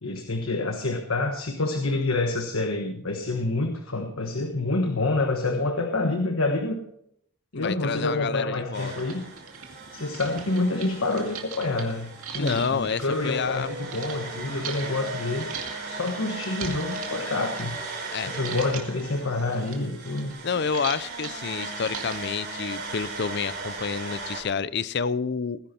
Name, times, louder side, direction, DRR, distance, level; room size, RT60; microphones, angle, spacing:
voice 1, 0.0-6.8 7.5-9.2 9.9-15.5 15.8-17.8 18.2-20.3, left 2 dB, 80° left, 4 dB, 1.4 m, -27 dB
voice 2, 7.5-8.9 12.4-13.7 18.1-18.3 20.4-25.6, left 5 dB, 50° left, 16 dB, 0.5 m, -29 dB
sound 1, 7.8-7.9 8.5-8.6 8.9-14.1 14.6-18.1 18.3-19.0 19.4-22.4, right 6 dB, 90° right, 2.3 m, -39 dB
sound 2, 8.7-24.4, right 3 dB, 50° right, 4.5 m, -37 dB
18.5 x 10.5 x 4.3 m, 0.72 s
head